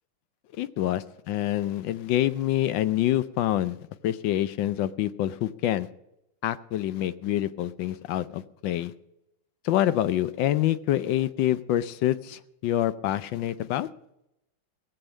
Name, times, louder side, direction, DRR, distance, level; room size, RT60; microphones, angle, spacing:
voice 1, 0.6-3.8 4.0-5.9 6.4-8.9 9.6-13.9, left 13 dB, 75° left, 15 dB, 1.3 m, -26 dB
18.0 x 7.8 x 6.4 m, 0.84 s
omnidirectional pair, 2.1 m